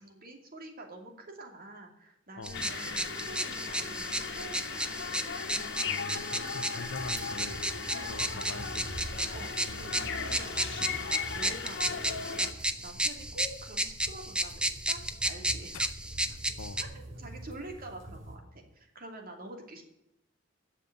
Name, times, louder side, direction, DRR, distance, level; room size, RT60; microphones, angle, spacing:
voice 1, 0.0-4.8 7.9-8.7 9.3-15.8 16.8-19.8, right 2 dB, 45° right, 3 dB, 2.6 m, -47 dB
voice 2, 2.4-2.7 5.8-7.6 8.1-9.0 9.6-10.3 15.7-15.9 16.2-16.8, left 3 dB, 90° left, 13 dB, 0.8 m, -44 dB
sound 1, 2.4-16.8, right 1 dB, 5° right, 0.7 m, -34 dB
sound 2, 2.5-12.5, left 5 dB, 60° left, 1.5 m, -37 dB
sound 3, 6.8-18.4, right 1 dB, 70° right, 3.8 m, -45 dB
11.0 x 7.4 x 9.3 m, 0.84 s
head